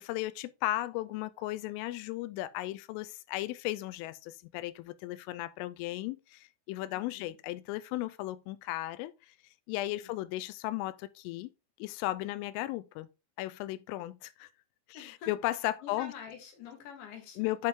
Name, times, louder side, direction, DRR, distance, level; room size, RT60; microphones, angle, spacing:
voice 1, 0.0-9.3 9.7-11.5 11.8-13.1 13.4-14.5 14.9-16.1 17.4-17.7, left 16 dB, 85° left, 3.1 m, -35 dB
voice 2, 6.9-7.4 9.9-10.1 14.9-15.3 15.8-17.5, left 7 dB, 70° left, 3.9 m, -47 dB
8.3 x 5.2 x 3.6 m
omnidirectional pair, 5.7 m